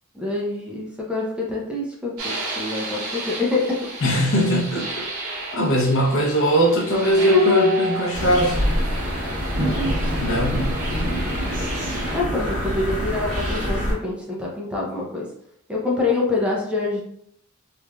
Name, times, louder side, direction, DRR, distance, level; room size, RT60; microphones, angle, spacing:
voice 1, 0.1-3.8 9.8-9.9 12.1-15.3 15.7-17.0, left 3 dB, 5° right, -3 dB, 0.5 m, -26 dB
sound 1, 2.2-12.2, left 2 dB, 80° right, 0.9 m, -29 dB
voice 2, 4.0-5.0 5.5-8.8 10.1-10.7, equal, 60° left, -1 dB, 0.7 m, -20 dB
sound 2, 8.1-13.9, equal, 40° right, 1.3 m, -25 dB
3.1 x 2.4 x 2.2 m, 0.70 s
head